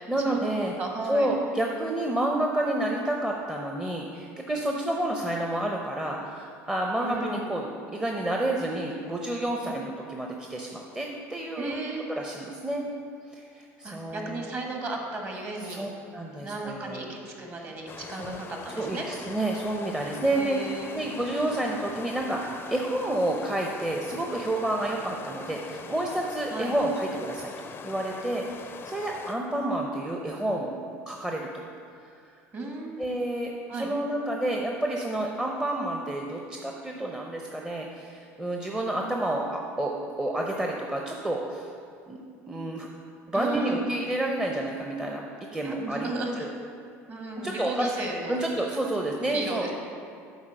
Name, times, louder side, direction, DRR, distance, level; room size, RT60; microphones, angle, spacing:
voice 1, 0.0-0.7 1.0-11.8 12.1-12.8 13.3-14.5 15.6-17.1 17.6-17.7 18.1-18.4 18.8-20.6 20.9-27.5 27.8-30.7 31.1-31.5 33.0-41.7 42.1-42.9 43.3-45.2 45.5-46.1 46.4-46.5 47.4-47.9 48.3-49.7, right 1 dB, 10° right, 0 dB, 0.7 m, -29 dB
voice 2, 0.8-1.3 7.0-7.4 11.6-12.0 13.8-15.8 16.4-19.0 20.3-21.0 26.5-26.7 32.5-33.0 33.7-33.9 43.3-43.8 45.6-46.5 47.1-48.4 49.3-49.8, right 2 dB, 35° right, 1 dB, 1.6 m, -34 dB
sound 1, 17.9-29.4, left 6 dB, 35° left, 0.5 m, -42 dB
8.1 x 4.3 x 6.5 m, 2.3 s
supercardioid pair, 95°, 7 cm